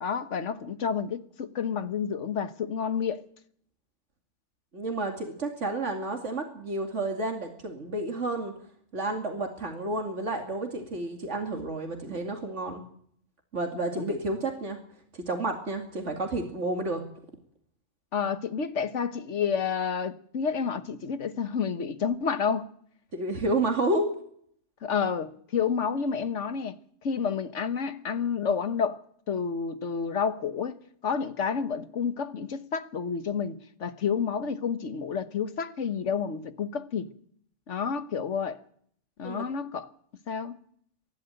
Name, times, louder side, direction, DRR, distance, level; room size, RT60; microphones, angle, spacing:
voice 1, 0.0-3.3 14.0-14.1 18.1-22.7 24.8-26.8 27.0-29.0 29.3-37.1 37.7-38.6 39.2-39.9 40.3-40.6, left 6 dB, 80° left, 1.5 m, -30 dB
voice 2, 4.7-8.5 8.9-12.8 13.5-14.8 15.1-17.0 23.1-24.1 39.2-39.5, right 2 dB, 80° right, 2.7 m, -30 dB
26.0 x 11.5 x 9.1 m
omnidirectional pair, 1.2 m